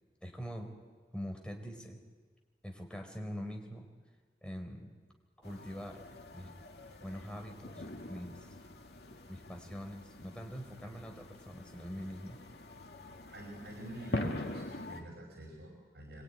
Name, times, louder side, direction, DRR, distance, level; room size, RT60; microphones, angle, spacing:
voice 1, 0.2-0.7 1.1-2.0 2.6-3.9 4.4-4.9 5.4-6.0 6.3-6.5 7.0-8.5 9.3-12.4, equal, 5° left, 2 dB, 4.4 m, -43 dB
sound 1, 5.4-15.0, left 1 dB, 70° left, 2.2 m, -44 dB
voice 2, 13.3-16.2, right 1 dB, 75° right, 0 dB, 5.3 m, -46 dB
26.0 x 22.5 x 9.9 m, 1.5 s
head